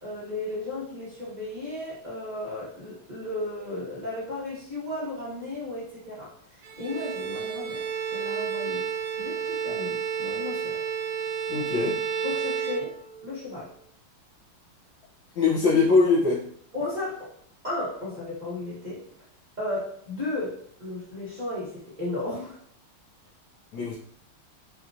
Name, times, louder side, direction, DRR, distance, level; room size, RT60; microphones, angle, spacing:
voice 1, 0.0-7.8 8.1-8.8 9.2-10.8 12.2-13.0 13.2-13.7 16.7-17.4 17.6-19.0 19.6-22.6 23.8-23.9, left 2 dB, 50° right, -9 dB, 0.5 m, -34 dB
Bowed string instrument, 6.6-13.4, right 7 dB, 75° right, 1.3 m, -31 dB
voice 2, 11.5-12.0 15.4-16.4 23.7-24.0, left 4 dB, 75° left, -4 dB, 1.3 m, -22 dB
4.2 x 2.4 x 2.4 m, 0.63 s
omnidirectional pair, 2.4 m